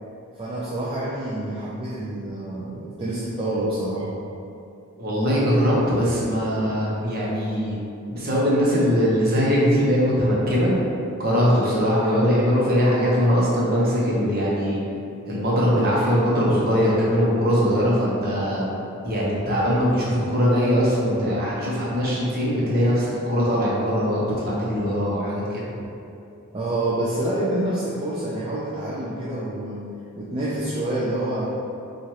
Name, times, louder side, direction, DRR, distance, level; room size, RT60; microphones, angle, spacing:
voice 1, 0.4-4.1 26.5-29.8 30.2-31.5, right 1 dB, 25° right, -8 dB, 0.3 m, -27 dB
voice 2, 5.0-7.7 8.1-10.7 11.2-14.8 15.3-18.7 19.0-25.7, equal, 45° right, -6 dB, 0.8 m, -21 dB
4.6 x 2.4 x 2.8 m, 2.7 s
head